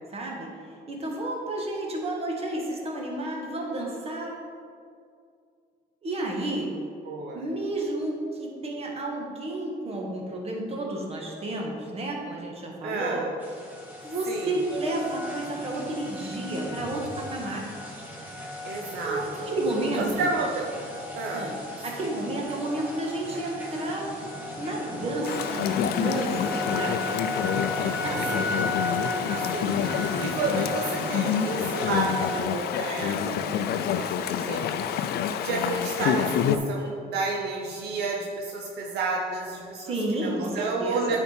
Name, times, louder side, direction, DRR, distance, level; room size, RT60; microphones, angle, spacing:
voice 1, 0.1-4.3 6.0-6.7 7.3-13.2 14.0-17.7 19.0-20.3 21.3-21.6 21.8-24.1 24.6-27.0 28.0-28.4 33.4-33.8 39.9-41.2, right 1 dB, 35° right, -1 dB, 1.6 m, -31 dB
voice 2, 7.0-7.4 12.8-13.3 14.3-14.6 18.6-19.5 20.0-20.7 21.2-21.5 28.3-41.2, right 3 dB, 75° right, 0 dB, 0.8 m, -31 dB
sound 1, 13.4-32.4, left 1 dB, 10° right, 1.8 m, -35 dB
Chatter / Stream, 25.2-36.6, left 9 dB, 70° left, 0.5 m, -28 dB
9.3 x 4.5 x 4.4 m, 2.3 s
cardioid pair, 110°, 17 cm